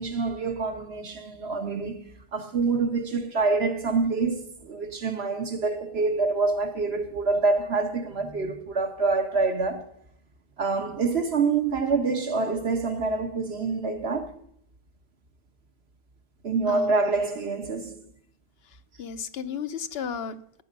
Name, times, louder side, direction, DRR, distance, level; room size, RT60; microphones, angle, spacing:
voice 1, 0.0-2.0 2.3-9.9 10.6-14.4 16.4-18.1, right 4 dB, 90° right, 1.6 m, -26 dB
voice 2, 19.0-20.6, left 7 dB, 75° left, 1.0 m, -34 dB
11.0 x 9.2 x 5.3 m
omnidirectional pair, 1.0 m